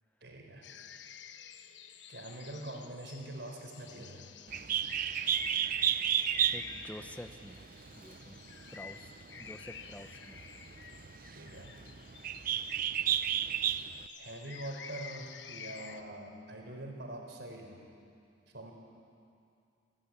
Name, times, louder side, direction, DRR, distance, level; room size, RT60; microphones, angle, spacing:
voice 1, 0.2-0.7 2.1-4.3 11.3-11.7 13.0-13.1 14.1-17.8 18.5-18.7, right 1 dB, 75° right, 1 dB, 4.1 m, -44 dB
sound 1, 0.6-16.0, left 7 dB, 85° left, 1.0 m, -50 dB
Bird, 4.5-14.1, right 10 dB, 50° right, 0.6 m, -33 dB
voice 2, 5.7-6.0 6.5-8.4 8.7-10.4, left 1 dB, 10° left, 8 dB, 0.9 m, -49 dB
26.0 x 16.5 x 9.0 m, 2.4 s
head